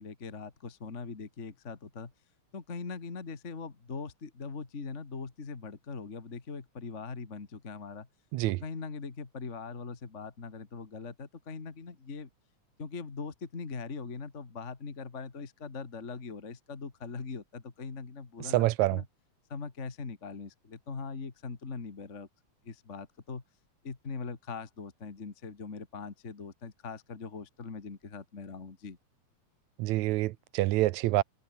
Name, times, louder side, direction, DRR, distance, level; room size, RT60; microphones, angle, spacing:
voice 1, 0.0-2.1 2.5-8.1 8.5-12.3 12.8-19.1 19.5-22.3 22.6-23.4 23.8-29.0, left 4 dB, 25° left, 2.1 m, -41 dB
voice 2, 18.5-19.0 29.8-31.2, right 17 dB, 80° right, 2.0 m, -26 dB
omnidirectional pair, 3.4 m